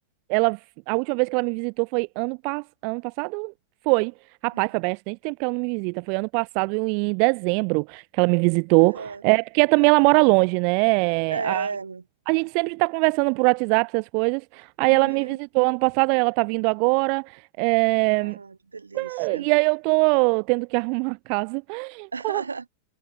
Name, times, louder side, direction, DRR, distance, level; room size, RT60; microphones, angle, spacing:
voice 1, 0.9-3.5 3.9-4.1 4.4-11.7 12.3-18.4 19.0-22.4, right 39 dB, 45° right, 0.4 m, -22 dB
voice 2, 8.8-9.2 11.3-12.0 14.8-15.4 18.2-19.5 22.1-22.7, right 4 dB, 75° right, 0.8 m, -34 dB
figure-of-eight pair, 90°, 0 cm